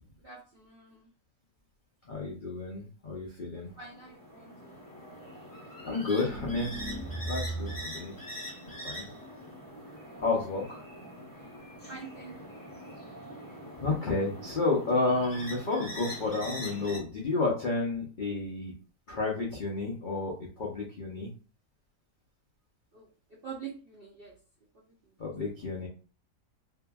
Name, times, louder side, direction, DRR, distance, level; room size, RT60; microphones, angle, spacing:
voice 1, 0.2-1.1 3.6-4.8 11.9-12.7 22.9-24.4 24.7-25.3, right 6 dB, 70° right, -3 dB, 0.5 m, -47 dB
voice 2, 2.0-3.7 5.8-6.8 7.2-8.1 8.6-9.1 10.2-10.8 13.8-18.7 19.1-21.3 25.2-25.9, left 3 dB, 75° left, -3 dB, 0.4 m, -31 dB
sound 1, 3.7-17.0, equal, 20° left, 0.5 m, -43 dB
sound 2, 6.2-8.0, right 2 dB, 25° right, 0.7 m, -37 dB
2.7 x 2.6 x 2.2 m, 0.36 s
omnidirectional pair, 1.7 m